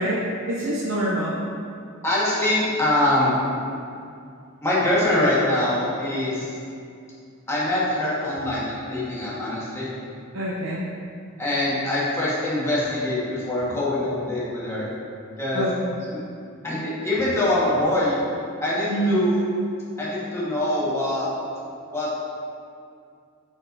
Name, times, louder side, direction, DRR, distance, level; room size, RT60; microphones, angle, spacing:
voice 1, 0.0-1.5 10.3-10.9 15.5-15.9 18.9-19.2, right 1 dB, 75° right, -6 dB, 0.8 m, -25 dB
voice 2, 2.0-3.3 4.6-6.6 7.5-9.9 11.4-14.9 15.4-15.7 16.1-16.2 16.6-18.2 18.6-19.3 20.0-21.3 21.9-22.1, left 1 dB, 15° left, -9 dB, 1.5 m, -23 dB
8.3 x 5.3 x 2.7 m, 2.4 s
head